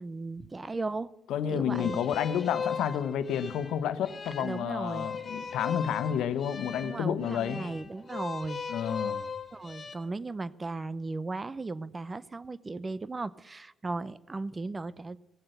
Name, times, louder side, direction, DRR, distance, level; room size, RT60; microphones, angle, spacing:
voice 1, 0.0-1.1 1.5-2.0 4.4-5.1 6.8-8.6 9.5-15.2, right 3 dB, 25° right, 18 dB, 0.6 m, -36 dB
voice 2, 1.3-7.6 8.7-9.2, left 9 dB, 80° left, 12 dB, 1.0 m, -30 dB
sound 1, 1.7-9.9, left 6 dB, 35° left, 2.0 m, -38 dB
17.0 x 7.7 x 8.0 m, 0.91 s
cardioid pair, 90°, 0 cm